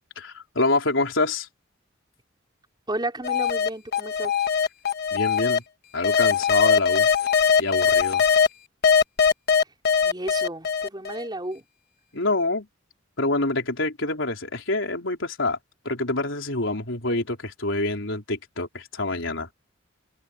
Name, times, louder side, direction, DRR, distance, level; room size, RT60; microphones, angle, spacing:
voice 1, 0.2-1.5 5.1-5.6 5.9-7.1 7.6-8.2 12.1-12.7 13.2-15.6 15.8-19.5, left 2 dB, 70° left, 4.4 m, -26 dB
voice 2, 2.9-4.3 10.0-11.6, right 1 dB, 20° right, 4.8 m, -32 dB
sound 1, 3.2-5.6 6.0-8.5 8.8-11.2, left 6 dB, 55° left, 1.4 m, -21 dB
head